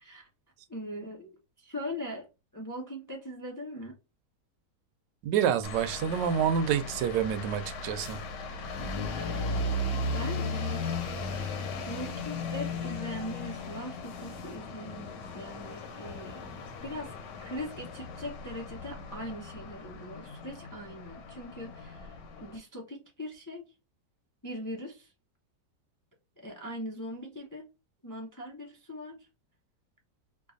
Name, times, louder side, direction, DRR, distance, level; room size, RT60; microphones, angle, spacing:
voice 1, 0.7-1.3 1.6-2.3 2.5-4.0 9.1-9.7 10.1-10.9 11.8-16.5 16.8-17.1 17.4-23.6 24.4-25.1 26.4-27.6 28.0-29.3, equal, 25° left, 0.4 m, -40 dB
voice 2, 5.2-8.2, right 8 dB, 90° right, 1.2 m, -28 dB
sound 1, 5.6-22.6, left 2 dB, 80° left, 1.5 m, -37 dB
4.6 x 2.4 x 2.5 m
omnidirectional pair, 1.8 m